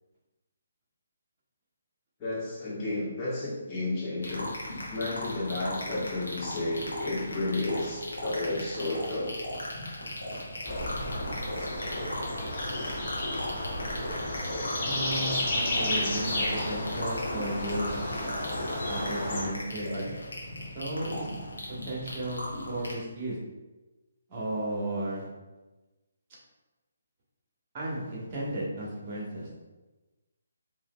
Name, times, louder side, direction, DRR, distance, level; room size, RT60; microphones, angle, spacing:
voice 1, 2.2-4.5 4.9-9.3, left 2 dB, 25° left, -7 dB, 1.3 m, -32 dB
sound 1, 4.2-22.9, left 1 dB, 75° left, 1.1 m, -38 dB
sound 2, 10.6-19.4, left 1 dB, 40° left, 1.0 m, -32 dB
voice 2, 14.8-17.9 18.8-20.1 20.7-21.4 21.9-23.4 24.3-25.3 27.7-29.5, right 1 dB, 30° right, -4 dB, 1.4 m, -34 dB
4.9 x 2.9 x 2.3 m, 1.1 s
figure-of-eight pair, 145°, 0 cm